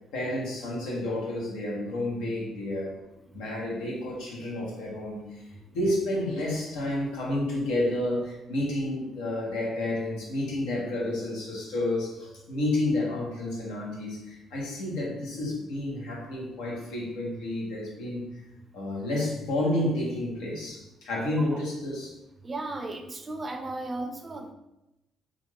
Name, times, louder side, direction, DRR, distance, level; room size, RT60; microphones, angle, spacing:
voice 1, 0.1-3.0 3.3-18.4 18.7-22.1, left 1 dB, 90° left, -4 dB, 0.8 m, -30 dB
voice 2, 22.4-24.5, right 2 dB, 30° right, 5 dB, 0.4 m, -35 dB
2.4 x 2.4 x 3.2 m, 0.93 s
supercardioid pair, 75°, 0 cm